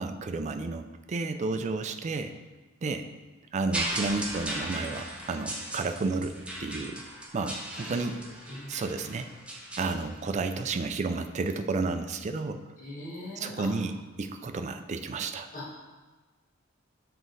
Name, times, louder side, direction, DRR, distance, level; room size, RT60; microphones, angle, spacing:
voice 1, 0.0-2.3 2.8-3.1 3.5-7.0 7.3-8.2 8.7-9.3 9.8-12.6 13.4-13.9 14.2-15.5, right 3 dB, 35° right, 8 dB, 0.4 m, -31 dB
sound 1, 3.7-10.7 11.5-11.6, right 1 dB, 5° right, 0.7 m, -37 dB
voice 2, 7.7-8.2 8.5-8.7 12.8-13.7 15.5-16.0, left 1 dB, 40° left, -5 dB, 1.5 m, -41 dB
7.0 x 3.7 x 3.9 m, 1.3 s
head